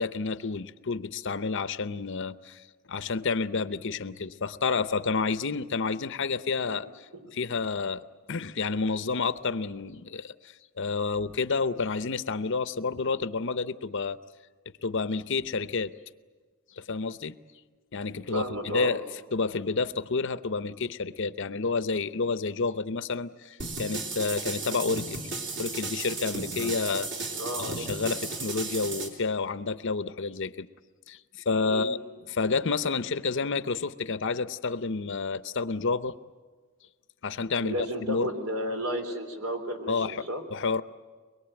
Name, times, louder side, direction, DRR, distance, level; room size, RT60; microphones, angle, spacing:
voice 1, 0.0-14.2 14.8-15.9 16.7-17.4 17.9-19.0 19.3-25.3 25.6-27.1 27.6-30.7 31.1-32.0 32.3-36.2 37.2-38.3 39.9-40.8, left 4 dB, 55° left, 13 dB, 0.7 m, -30 dB
voice 2, 18.1-19.0 27.4-27.9 31.6-31.9 37.6-40.4, equal, 80° right, 5 dB, 3.7 m, -33 dB
sound 1, 23.6-29.1, right 3 dB, 55° right, 3.2 m, -34 dB
23.5 x 22.0 x 9.0 m, 1.4 s
head